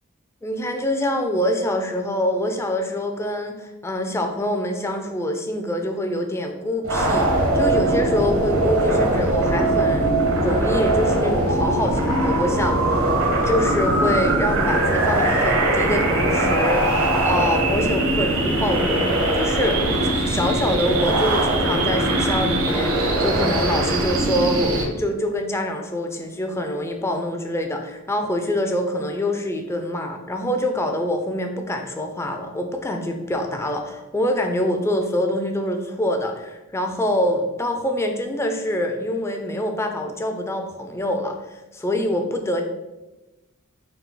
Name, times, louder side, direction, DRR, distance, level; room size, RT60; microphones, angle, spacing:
voice 1, 0.4-12.8 13.4-42.6, left 1 dB, 15° left, 4 dB, 0.4 m, -25 dB
sound 1, 6.8-24.8, right 1 dB, 70° right, 0.7 m, -21 dB
3.5 x 2.6 x 3.8 m, 1.0 s
head